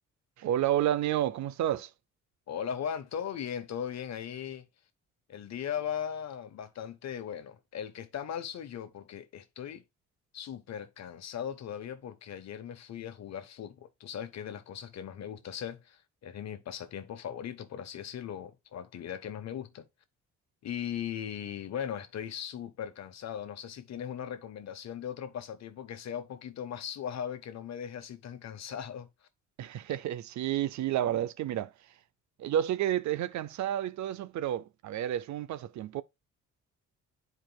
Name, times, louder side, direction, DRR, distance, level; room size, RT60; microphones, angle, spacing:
voice 1, 0.4-1.9 29.6-31.7 32.4-36.0, right 11 dB, 70° right, 0.6 m, -30 dB
voice 2, 2.5-4.7 5.3-9.8 10.3-19.9 20.6-29.1, left 9 dB, 60° left, 1.1 m, -38 dB
10.5 x 4.6 x 2.3 m
cardioid pair, 90°, 30 cm